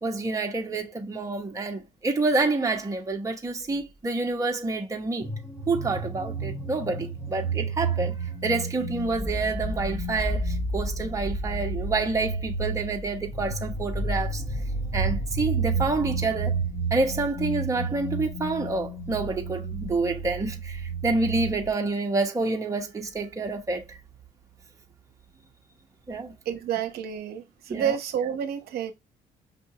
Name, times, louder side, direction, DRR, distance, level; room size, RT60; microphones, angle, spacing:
voice 1, 0.0-5.3 5.7-8.2 8.4-14.4 14.9-16.6 16.9-23.8 26.1-26.3 27.7-28.0, right 3 dB, 20° right, 1.1 m, -28 dB
sound 1, 5.2-21.7, right 3 dB, 15° left, 1.7 m, -31 dB
voice 2, 26.5-28.9, right 9 dB, 65° right, 0.8 m, -29 dB
5.7 x 2.7 x 2.8 m
cardioid pair, 110°, 17 cm